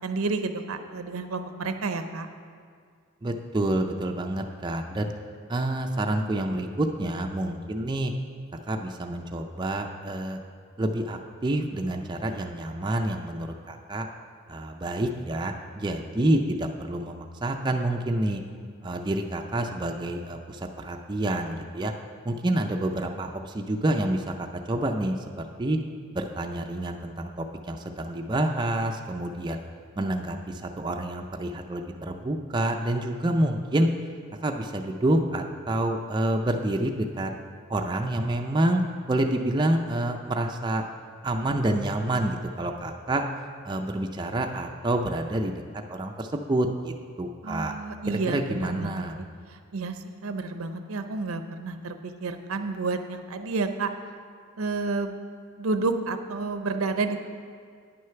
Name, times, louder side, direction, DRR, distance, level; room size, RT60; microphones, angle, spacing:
voice 1, 0.0-2.3 47.4-49.0 49.7-53.9 54.6-55.2 55.6-57.2, right 3 dB, 85° right, 8 dB, 0.7 m, -30 dB
voice 2, 3.2-5.1 5.5-8.1 8.7-10.4 10.8-14.1 14.5-18.4 18.8-21.9 22.2-25.2 25.6-25.8 26.1-29.6 30.0-33.9 34.4-37.3 37.7-38.8 39.1-40.8 41.2-43.2 43.6-47.8 48.1-49.2, right 1 dB, 20° right, 3 dB, 0.4 m, -28 dB
9.8 x 6.4 x 5.7 m, 2.1 s
head